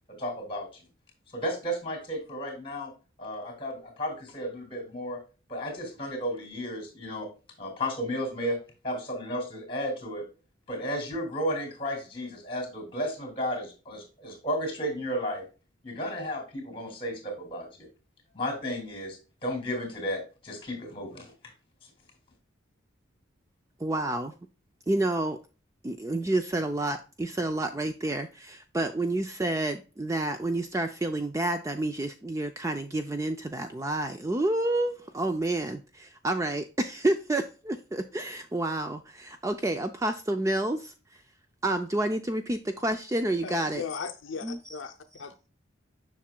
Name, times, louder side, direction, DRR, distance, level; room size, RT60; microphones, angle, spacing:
voice 1, 0.2-0.7 1.3-2.9 3.2-5.2 5.5-7.3 7.6-8.6 8.8-10.2 10.7-15.4 15.8-17.9 18.3-19.2 19.4-21.3, equal, 25° left, 4 dB, 2.7 m, -33 dB
voice 2, 23.8-24.3 24.9-25.4 25.8-40.9 41.6-43.9 44.4-44.7, right 2 dB, 15° right, 7 dB, 0.3 m, -29 dB
voice 3, 43.4-45.5, left 5 dB, 70° left, 6 dB, 0.6 m, -38 dB
7.3 x 5.9 x 2.2 m, 0.33 s
head